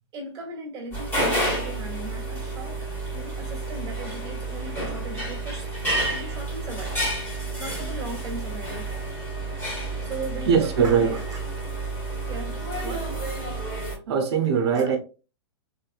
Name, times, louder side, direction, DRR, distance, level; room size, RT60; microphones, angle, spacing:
voice 1, 0.1-8.9 10.0-11.4 12.3-13.1 14.7-15.0, right 2 dB, 25° right, 1.6 m, -38 dB
sound 1, 0.9-13.9, right 2 dB, 15° left, 1.6 m, -30 dB
voice 2, 10.5-11.2 14.1-15.0, right 6 dB, 60° right, 0.9 m, -21 dB
3.4 x 3.3 x 2.4 m
hypercardioid pair, 145°, 15 cm